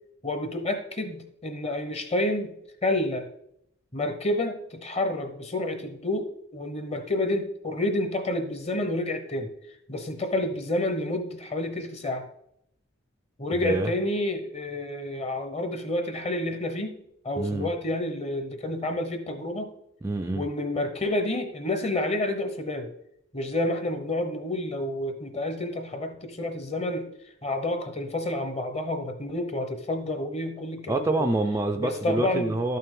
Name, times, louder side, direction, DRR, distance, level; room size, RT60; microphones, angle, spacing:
voice 1, 0.2-2.5 2.8-3.3 3.9-9.5 9.9-12.2 13.4-17.0 17.2-19.7 20.3-22.9 23.3-27.1 27.4-31.3 31.8-32.6, left 1 dB, 30° left, 7 dB, 0.8 m, -29 dB
voice 2, 13.6-13.9 17.4-17.7 20.0-20.5 30.9-32.8, right 2 dB, 15° right, 5 dB, 0.3 m, -26 dB
12.0 x 5.7 x 3.7 m, 0.75 s
head